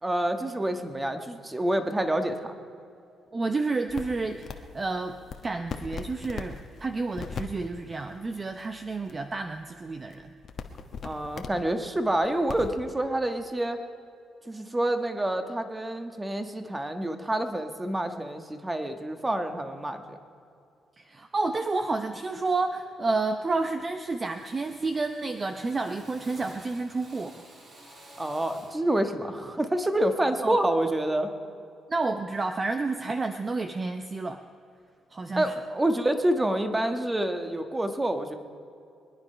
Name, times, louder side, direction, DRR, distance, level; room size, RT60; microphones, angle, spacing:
voice 1, 0.0-2.6 11.0-13.8 14.5-20.2 28.2-31.3 35.3-38.3, right 1 dB, 15° right, 7 dB, 1.4 m, -27 dB
voice 2, 3.3-10.3 21.0-27.4 30.4-30.6 31.9-34.4 35.1-35.5, right 3 dB, 30° right, 7 dB, 0.7 m, -30 dB
sound 1, 3.9-12.7, left 5 dB, 55° left, 1.2 m, -42 dB
Drill, 22.6-23.1 23.3-23.9 24.3-28.9, right 1 dB, 50° right, 3.7 m, -52 dB
23.5 x 9.9 x 5.6 m, 2.5 s
cardioid pair, 90°, 0 cm